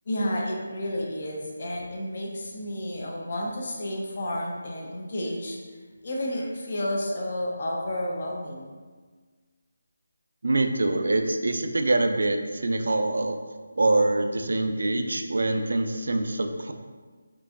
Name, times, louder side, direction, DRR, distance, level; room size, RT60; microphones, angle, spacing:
voice 1, 0.1-5.6 6.0-8.7, left 1 dB, 50° left, -1 dB, 0.6 m, -31 dB
voice 2, 10.4-13.4 13.8-16.7, right 2 dB, 70° right, 6 dB, 0.3 m, -24 dB
3.8 x 2.4 x 2.4 m, 1.4 s
figure-of-eight pair, 160°, 0 cm